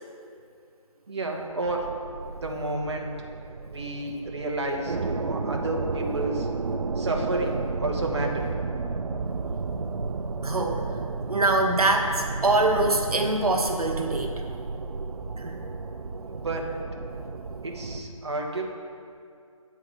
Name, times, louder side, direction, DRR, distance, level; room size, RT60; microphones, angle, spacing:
voice 1, 1.1-1.9 2.4-3.1 3.7-6.5 7.0-8.5 16.3-16.7 17.6-18.6, right 2 dB, 50° right, 0 dB, 1.1 m, -30 dB
sound 1, 1.6-18.0, right 4 dB, 70° right, 0.6 m, -32 dB
voice 2, 10.4-10.8 11.3-14.4 15.4-15.6, right 2 dB, 90° right, 2 dB, 1.2 m, -24 dB
8.6 x 4.8 x 7.3 m, 2.4 s
figure-of-eight pair, 175°, 19 cm